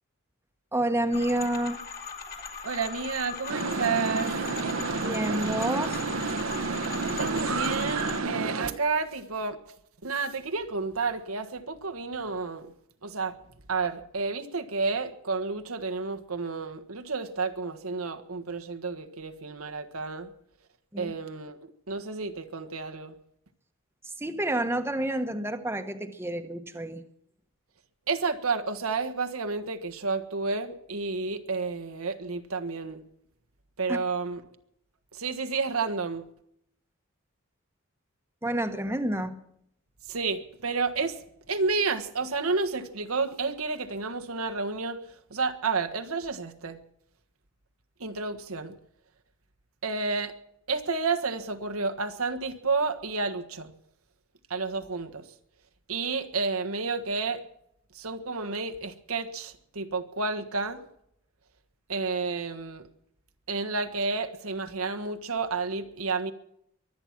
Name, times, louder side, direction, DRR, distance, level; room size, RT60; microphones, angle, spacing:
voice 1, 0.7-1.8 5.0-6.0 20.9-21.1 24.2-27.0 33.9-34.0 38.4-39.4, right 1 dB, 10° right, 1.1 m, -29 dB
sound 1, 1.1-8.2, left 5 dB, 45° left, 2.6 m, -39 dB
voice 2, 2.6-4.3 7.1-9.6 10.0-12.7 13.0-13.4 13.7-20.3 21.0-23.1 28.1-33.0 33.8-34.4 35.1-36.2 40.1-41.2 41.5-45.0 45.3-46.8 48.0-48.7 49.8-50.3 50.7-53.7 54.5-55.2 55.9-57.4 57.9-60.8 61.9-62.9 63.5-66.3, right 4 dB, 90° right, 1.5 m, -30 dB
sound 2, 3.5-8.7, right 4 dB, 75° right, 1.1 m, -30 dB
23.5 x 9.0 x 6.0 m
head